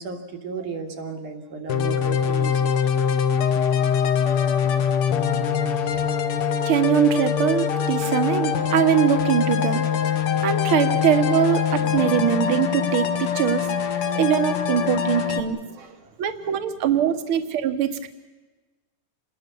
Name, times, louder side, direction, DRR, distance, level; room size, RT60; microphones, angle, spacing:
voice 1, 0.0-2.7 5.9-6.0 14.0-14.2 15.3-17.2, right 5 dB, 80° right, 4 dB, 3.5 m, -36 dB
sound 1, 1.7-15.4, left 7 dB, 60° left, 1.6 m, -23 dB
voice 2, 6.7-9.8 10.4-15.6 16.2-18.1, right 9 dB, 55° right, 9 dB, 1.7 m, -22 dB
27.5 x 20.5 x 7.0 m, 1.2 s
omnidirectional pair, 3.6 m